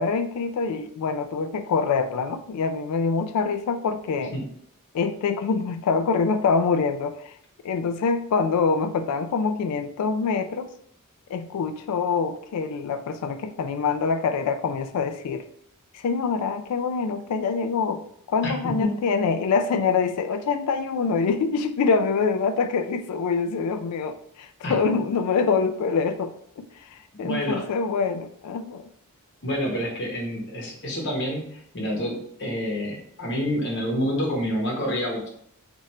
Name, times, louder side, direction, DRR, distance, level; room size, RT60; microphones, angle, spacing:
voice 1, 0.0-4.3 4.9-7.3 7.6-10.7 11.3-15.4 15.9-18.0 18.3-28.9, left 5 dB, 90° left, 10 dB, 0.3 m, -25 dB
voice 2, 18.4-18.9 24.6-24.8 27.1-27.6 29.4-35.3, equal, 50° left, -1 dB, 1.1 m, -28 dB
3.2 x 2.5 x 4.2 m, 0.68 s
head